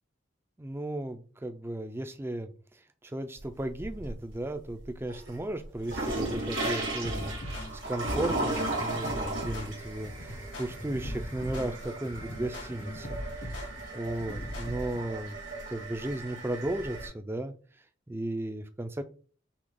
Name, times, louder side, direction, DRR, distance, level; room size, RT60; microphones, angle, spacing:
voice 1, 0.6-2.5 3.0-7.6 7.9-13.2 13.9-15.3 15.7-17.5 18.1-19.0, right 1 dB, 10° right, 9 dB, 0.4 m, -35 dB
sound 1, 3.4-4.3 4.8-17.1, right 2 dB, 85° right, 1.8 m, -36 dB
sound 2, 7.0-15.0, left 1 dB, 65° left, 1.6 m, -40 dB
6.1 x 2.2 x 3.7 m, 0.41 s
head